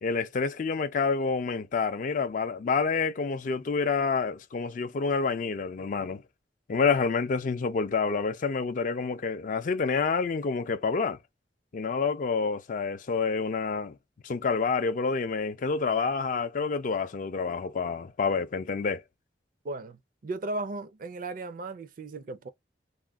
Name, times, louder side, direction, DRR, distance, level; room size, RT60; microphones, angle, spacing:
voice 1, 0.0-6.2 6.7-11.2 11.7-14.0 14.2-19.0, left 5 dB, 45° left, 0.4 m, -28 dB
voice 2, 19.6-22.5, right 2 dB, 50° right, 0.4 m, -36 dB
2.4 x 2.1 x 3.4 m
head